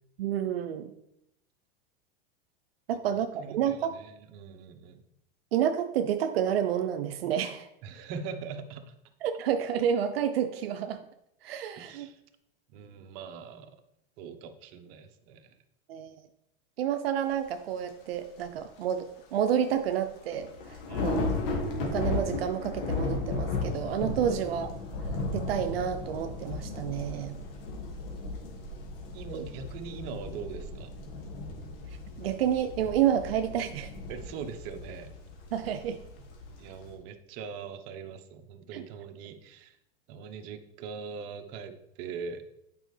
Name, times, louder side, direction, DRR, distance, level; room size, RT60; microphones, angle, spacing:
voice 1, 0.2-0.9 2.9-3.9 5.5-7.7 9.2-11.0 11.4-12.1 15.9-16.2 16.8-21.3 21.8-24.7 25.3-27.4 29.3-29.5 32.2-33.9 35.5-36.0 38.7-38.8, right 9 dB, 90° right, 7 dB, 0.6 m, -29 dB
voice 2, 3.1-5.1 7.8-8.9 11.7-12.2 12.7-13.8 14.2-15.6 20.9-21.3 24.4-24.7 29.1-30.9 34.1-35.2 36.6-39.8 40.1-42.4, right 6 dB, 55° right, 7 dB, 1.0 m, -42 dB
sound 1, 17.9-18.0 18.4-18.5 19.9-20.0 20.3-36.9, left 3 dB, 70° left, 1.9 m, -35 dB
8.8 x 5.4 x 3.2 m, 0.80 s
supercardioid pair, 120°, 29 cm